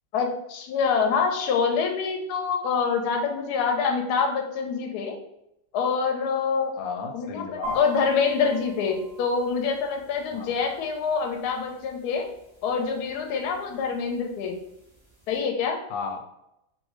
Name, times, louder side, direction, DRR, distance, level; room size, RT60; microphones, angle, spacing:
voice 1, 0.1-5.2 5.7-6.7 7.1-12.3 12.6-14.6 15.3-15.8, left 5 dB, 70° left, 3 dB, 1.0 m, -26 dB
voice 2, 6.7-7.8 10.3-10.7 15.9-16.2, left 5 dB, 90° left, 4 dB, 1.3 m, -34 dB
sound 1, 7.6-15.4, right 1 dB, 30° right, 0.5 m, -45 dB
2.8 x 2.6 x 3.0 m, 0.83 s
omnidirectional pair, 1.9 m